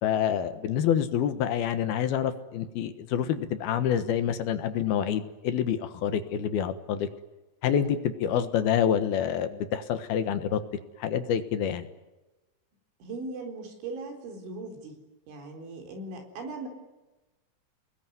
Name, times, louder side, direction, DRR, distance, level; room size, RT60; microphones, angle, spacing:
voice 1, 0.0-7.1 7.6-10.6 11.0-11.9, left 9 dB, 65° left, 10 dB, 2.9 m, -27 dB
voice 2, 13.0-15.0 15.3-16.7, right 3 dB, 90° right, 4 dB, 6.6 m, -39 dB
29.5 x 20.5 x 9.5 m, 1.1 s
omnidirectional pair, 5.3 m